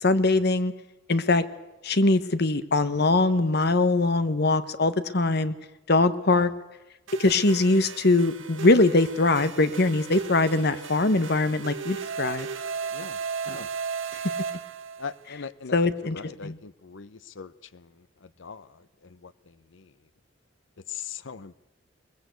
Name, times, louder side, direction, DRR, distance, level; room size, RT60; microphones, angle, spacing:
voice 1, 0.0-0.7 1.1-1.5 1.8-5.5 5.9-6.5 7.2-12.5 13.5-13.6 15.7-16.6, left 2 dB, 55° left, 1.2 m, -22 dB
sound 1, 7.1-15.2, right 5 dB, 80° right, 1.3 m, -36 dB
voice 2, 15.0-15.8 16.0-17.9 18.2-18.7 19.0-19.3 19.7-19.9 20.9-21.6, left 6 dB, 75° left, 0.7 m, -40 dB
22.0 x 20.0 x 8.2 m
head